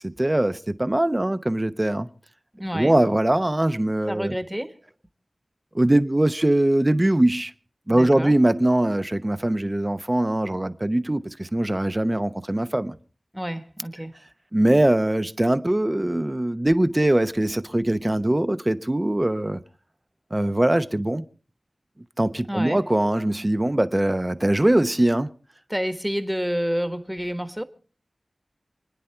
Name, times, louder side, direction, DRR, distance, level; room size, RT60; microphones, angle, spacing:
voice 1, 0.0-2.1 2.7-4.4 5.7-7.5 7.9-13.0 14.5-19.6 20.3-21.2 22.2-25.3, right 1 dB, 25° right, 0.9 m, -22 dB
voice 2, 2.5-3.0 4.1-4.8 7.9-8.3 13.3-14.1 22.4-22.8 25.7-27.6, equal, 5° right, 1.5 m, -29 dB
28.5 x 10.0 x 4.5 m
wide cardioid pair, 60°, 0 cm